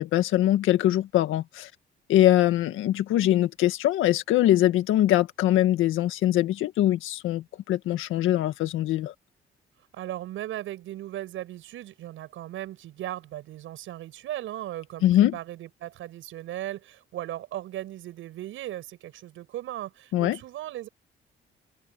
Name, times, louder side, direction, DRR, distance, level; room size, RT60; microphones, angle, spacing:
voice 1, 0.0-1.7 2.1-9.1 15.0-15.4 20.1-20.4, left 13 dB, 90° left, 1.8 m, -22 dB
voice 2, 9.9-20.9, right 13 dB, 85° right, 7.6 m, -37 dB
cardioid pair, 90°, 20 cm